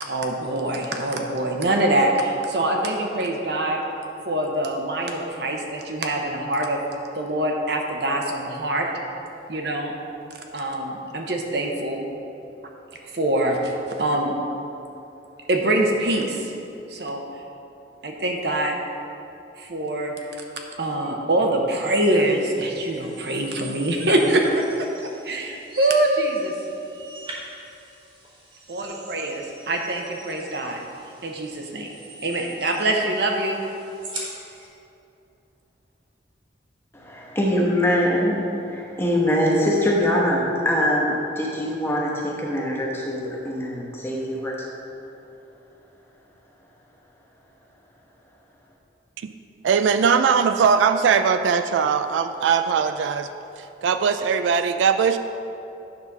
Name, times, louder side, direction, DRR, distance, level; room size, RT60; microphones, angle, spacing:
voice 1, 0.0-3.8 4.3-6.8 7.1-8.9 9.5-9.9 10.5-12.0 13.1-14.3 15.5-16.5 16.9-17.2 18.0-18.8 19.6-20.1 20.8-24.9 25.2-26.5 28.7-30.8 31.2-31.9 32.2-33.6, right 1 dB, 60° right, 2 dB, 0.8 m, -24 dB
sound 1, 21.9-34.7, right 2 dB, 25° right, 1.3 m, -43 dB
voice 2, 36.9-44.5, equal, 15° left, -3 dB, 1.0 m, -23 dB
voice 3, 49.6-53.3 53.8-55.2, right 6 dB, 85° right, 9 dB, 0.3 m, -20 dB
8.8 x 4.1 x 5.9 m, 2.8 s
head